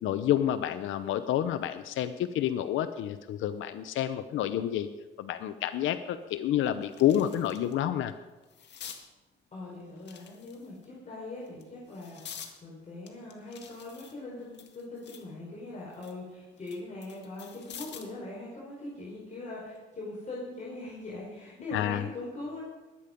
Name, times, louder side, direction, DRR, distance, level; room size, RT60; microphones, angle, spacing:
voice 1, 0.0-4.9 5.2-8.1 21.7-22.0, left 11 dB, 80° left, 10 dB, 0.7 m, -29 dB
sound 1, 5.7-5.8 6.3-7.7 8.1-9.0 10.0-10.8 11.4-12.5 13.1-15.3 15.7-18.2 19.5-19.8, left 7 dB, 60° left, 1.9 m, -48 dB
voice 2, 9.5-22.6, left 2 dB, 35° left, -5 dB, 4.6 m, -41 dB
21.0 x 8.6 x 5.2 m, 1.2 s
cardioid pair, 90°, 20 cm